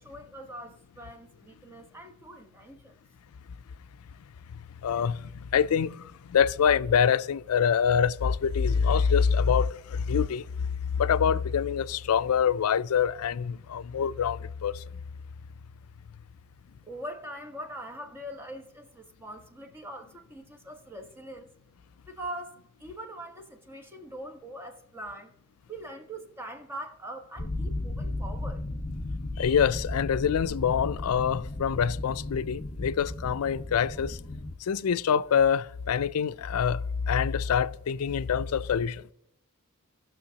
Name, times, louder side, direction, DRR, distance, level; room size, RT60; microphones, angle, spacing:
voice 1, 0.0-3.0 16.8-21.5 22.1-25.3 25.7-28.6, right 1 dB, 10° right, 1.2 m, -42 dB
voice 2, 4.8-6.0 6.3-10.7 10.9-14.7 29.4-34.2 34.7-39.0, left 7 dB, 85° left, 0.4 m, -25 dB
sound 1, 27.4-34.5, left 2 dB, 40° left, 1.1 m, -35 dB
17.5 x 6.3 x 2.8 m
head